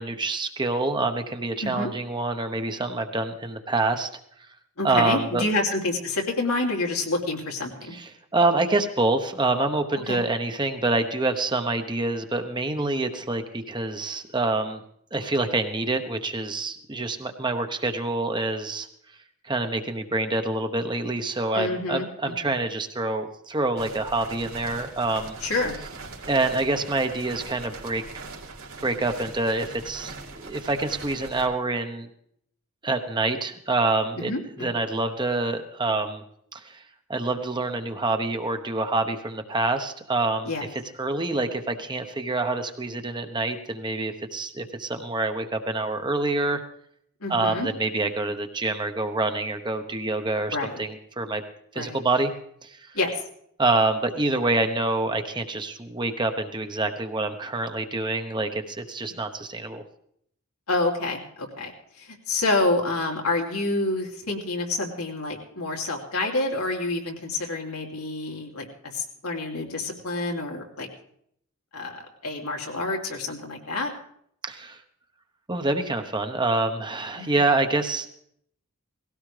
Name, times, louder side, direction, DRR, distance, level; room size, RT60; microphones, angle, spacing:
voice 1, 0.0-4.1 4.8-5.4 7.9-14.8 15.1-18.9 19.4-25.4 26.3-28.0 28.8-32.1 32.8-34.3 34.6-36.2 36.5-36.8 37.1-46.6 47.3-51.4 51.7-52.3 52.6-53.0 53.6-59.8 74.5-74.8 75.5-78.1, right 2 dB, 20° right, 6 dB, 0.9 m, -26 dB
voice 2, 4.8-7.9 10.1-10.2 21.5-22.5 25.4-25.7 34.2-34.7 40.4-40.7 47.2-47.7 50.5-50.8 51.7-52.0 52.9-53.1 60.7-68.7 68.9-70.9 71.7-73.9 77.2-77.4, left 2 dB, 85° left, 0 dB, 2.9 m, -28 dB
sound 1, 23.8-31.5, right 3 dB, 70° right, 2.5 m, -41 dB
19.0 x 16.5 x 3.3 m, 0.68 s
head